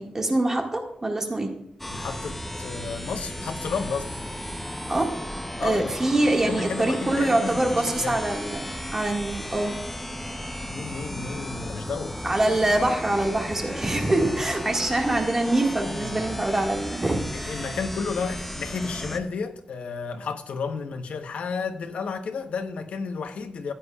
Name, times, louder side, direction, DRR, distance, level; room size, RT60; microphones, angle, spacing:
voice 1, 0.0-1.5 4.9-5.1 5.6-9.7 12.2-17.6, right 2 dB, 20° right, 1.8 m, -24 dB
sound 1, 1.8-19.2, equal, 5° left, 0.8 m, -35 dB
voice 2, 1.9-4.1 5.6-6.1 6.4-8.2 10.7-12.2 15.9-16.4 17.5-23.7, left 5 dB, 85° left, 1.0 m, -32 dB
15.0 x 9.7 x 2.4 m
wide cardioid pair, 165°, 2 cm